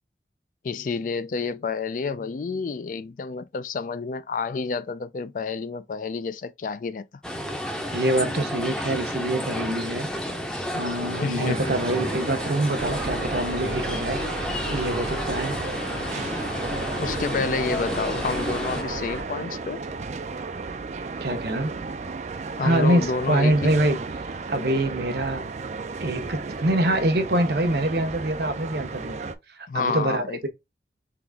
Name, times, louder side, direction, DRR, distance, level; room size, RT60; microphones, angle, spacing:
voice 1, 0.6-7.0 11.2-11.8 17.0-19.8 22.6-23.7 29.7-30.5, left 4 dB, 50° left, 0.3 m, -29 dB
sound 1, 7.2-18.8, equal, 5° left, 0.6 m, -31 dB
voice 2, 7.9-10.1 10.7-15.6 21.2-21.7 22.6-24.0 24.5-25.4 26.0-29.2 29.5-30.5, right 1 dB, 65° right, 0.9 m, -25 dB
sound 2, 11.4-29.4, right 4 dB, 40° right, 0.4 m, -34 dB
sound 3, 12.8-19.2, left 1 dB, 75° left, 1.5 m, -35 dB
3.9 x 2.9 x 3.4 m
head